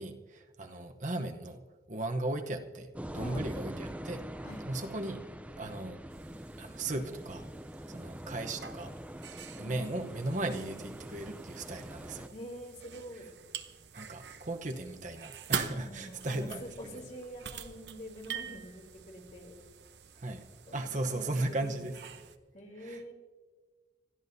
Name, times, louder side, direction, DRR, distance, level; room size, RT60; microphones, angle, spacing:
voice 1, 0.0-1.6 1.9-4.2 4.7-5.2 5.6-6.3 6.6-7.5 7.9-8.9 9.3-12.3 13.9-17.0 20.2-20.4 20.7-22.1 22.8-23.0, right 2 dB, 45° right, 4 dB, 0.9 m, -37 dB
sound 1, 2.9-12.3, right 1 dB, 10° right, 0.5 m, -44 dB
sound 2, 6.1-22.4, right 7 dB, 70° right, 0.8 m, -45 dB
voice 2, 9.6-10.0 12.3-13.3 15.7-19.5 20.7-21.8 22.5-23.1, equal, 40° left, 1 dB, 2.8 m, -46 dB
26.5 x 14.0 x 2.7 m, 1.4 s
head